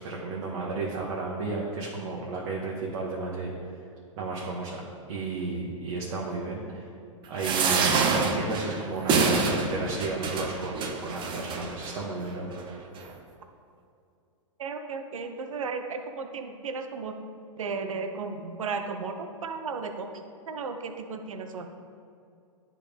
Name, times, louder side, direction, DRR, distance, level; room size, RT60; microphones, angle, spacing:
voice 1, 0.0-3.7 4.2-4.8 5.1-6.9 7.3-12.6, right 3 dB, 55° right, -4 dB, 1.1 m, -33 dB
sound 1, 7.4-11.9 12.6-12.7 13.0-13.1, right 4 dB, 30° right, 0.7 m, -26 dB
voice 2, 14.6-17.1 17.6-20.1 20.5-21.7, right 4 dB, 80° right, 6 dB, 0.6 m, -34 dB
10.0 x 3.8 x 3.4 m, 2.5 s
hypercardioid pair, 110°, 17 cm